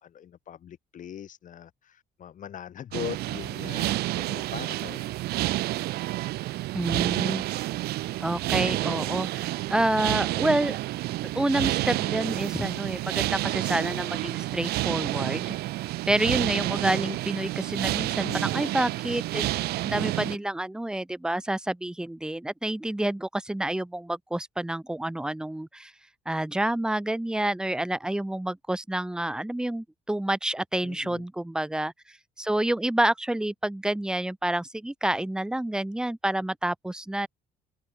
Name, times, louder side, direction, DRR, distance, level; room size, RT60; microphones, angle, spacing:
voice 1, 0.0-5.1 18.2-18.7 30.8-31.2, left 9 dB, 50° left, 2.2 m, -41 dB
sound 1, 2.9-20.4, right 18 dB, 70° right, 0.4 m, -29 dB
voice 2, 6.7-7.4 8.2-10.8 11.3-15.5 16.1-19.5 19.8-25.9 26.3-37.3, right 1 dB, 5° right, 0.6 m, -28 dB
cardioid pair, 110°, 17 cm